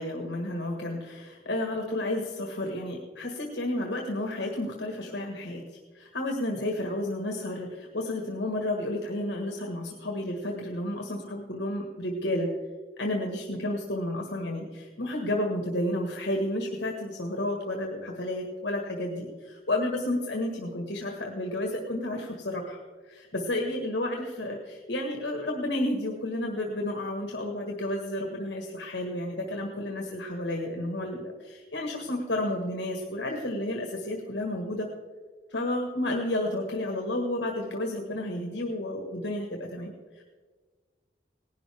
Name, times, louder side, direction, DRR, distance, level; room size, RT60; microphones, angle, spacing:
voice 1, 0.0-5.6 5.9-12.5 13.0-22.8 23.1-34.9 35.5-40.2, left 1 dB, 65° left, 1 dB, 1.6 m, -31 dB
18.5 x 11.5 x 3.5 m, 1.4 s
head